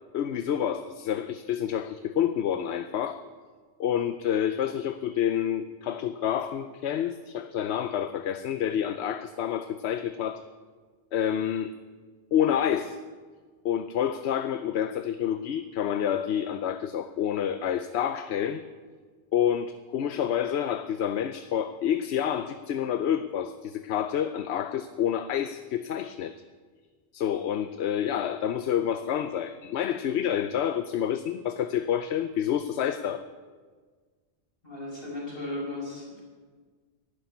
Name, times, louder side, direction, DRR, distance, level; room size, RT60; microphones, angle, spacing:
voice 1, 0.1-3.3 3.8-10.4 11.1-11.7 12.3-13.0 13.6-18.6 19.3-26.3 27.1-33.2, left 9 dB, 75° left, 11 dB, 0.9 m, -28 dB
voice 2, 34.6-36.2, left 1 dB, 55° left, -3 dB, 5.5 m, -36 dB
12.0 x 11.5 x 9.4 m, 1.5 s
omnidirectional pair, 1.2 m